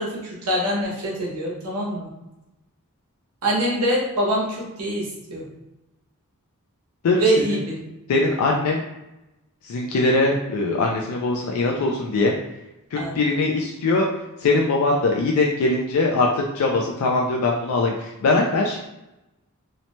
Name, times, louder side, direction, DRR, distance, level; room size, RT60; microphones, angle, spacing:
voice 1, 0.0-2.1 3.4-5.5 7.2-7.8 13.0-13.2, right 1 dB, 85° right, -4 dB, 0.9 m, -24 dB
voice 2, 7.0-7.6 8.1-8.8 9.6-12.3 12.9-14.1 14.4-18.8, left 3 dB, 85° left, 0 dB, 0.3 m, -21 dB
2.7 x 2.1 x 2.9 m, 0.96 s
head